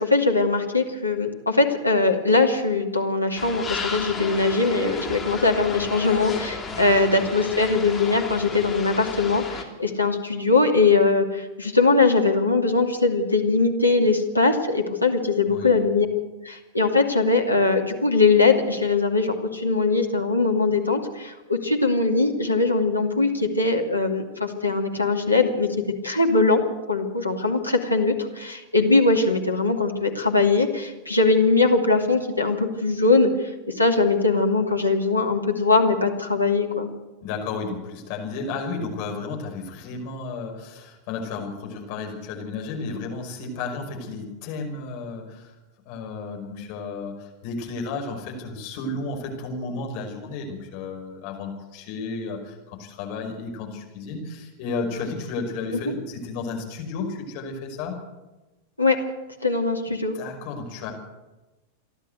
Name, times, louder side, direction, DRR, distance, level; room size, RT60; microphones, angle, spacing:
voice 1, 0.0-16.1 16.4-25.7 26.0-26.6 26.9-33.3 33.7-36.9 58.8-59.0 59.4-60.1, left 3 dB, 85° left, 2 dB, 2.5 m, -21 dB
sound 1, 3.4-9.6, left 4 dB, 15° left, 3.3 m, -33 dB
voice 2, 6.7-7.3 15.5-15.8 37.2-45.5 45.9-58.0 59.9-60.9, left 4 dB, 45° left, 2 dB, 5.5 m, -33 dB
28.0 x 11.5 x 8.0 m, 1.1 s
figure-of-eight pair, 90°, 0 cm